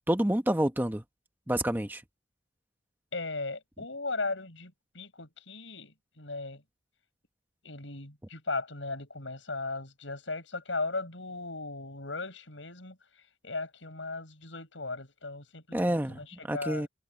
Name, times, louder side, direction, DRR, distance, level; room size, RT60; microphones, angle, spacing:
voice 1, 0.1-1.0 1.5-2.0 15.7-16.9, right 1 dB, 10° right, 1.0 m, -28 dB
voice 2, 3.1-6.6 7.6-13.0 13.4-16.9, left 3 dB, 85° left, 6.2 m, -37 dB
head